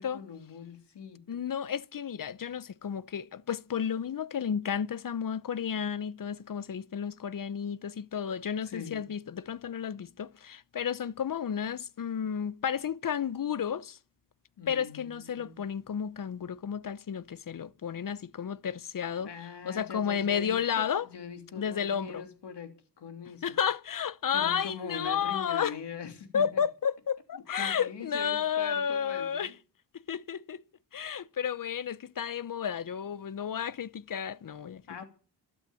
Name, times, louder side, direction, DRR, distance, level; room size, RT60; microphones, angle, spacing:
voice 1, 0.0-1.4 8.6-9.0 14.6-15.6 19.2-23.6 24.3-26.6 27.6-29.5 34.9-35.1, left 6 dB, 90° left, 3.1 m, -42 dB
voice 2, 1.3-14.0 14.7-19.3 19.7-21.1 21.6-22.2 23.4-25.7 26.3-29.5 30.1-30.6 30.9-34.8, left 8 dB, 55° left, 0.8 m, -32 dB
15.0 x 12.5 x 7.6 m
cardioid pair, 75°, 40 cm